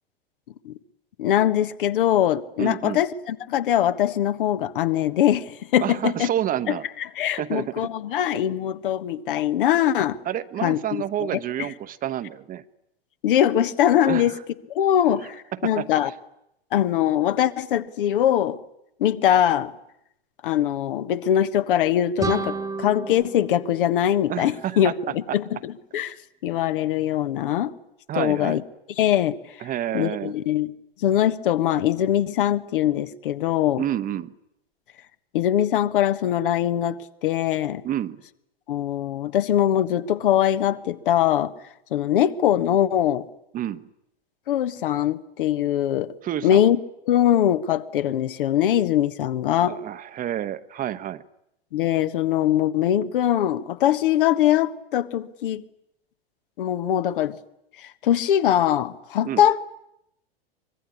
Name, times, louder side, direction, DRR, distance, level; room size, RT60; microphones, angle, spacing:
voice 1, 1.2-6.3 6.7-6.8 7.2-10.2 10.6-11.3 13.2-14.3 14.7-16.1 16.7-18.6 19.0-19.7 20.4-26.2 26.4-27.7 28.1-28.6 29.0-29.4 29.9-33.8 35.3-37.8 38.7-41.5 41.9-43.3 44.5-46.1 46.4-46.8 47.1-49.8 51.7-55.6 56.6-57.4 57.8-59.6, left 11 dB, 60° left, 12 dB, 1.4 m, -22 dB
voice 2, 2.6-3.0 5.8-6.8 7.4-7.9 10.2-12.6 14.1-14.4 15.5-15.9 24.3-24.9 25.3-25.4 28.1-28.6 29.6-30.3 33.8-34.3 37.8-38.2 43.5-43.9 46.2-46.7 49.7-51.2 59.2-59.4, right 11 dB, 30° right, 13 dB, 1.1 m, -29 dB
sound 1, 22.2-24.9, right 4 dB, 10° right, 1.5 m, -32 dB
24.5 x 22.5 x 9.8 m, 0.81 s
figure-of-eight pair, 90°, 30 cm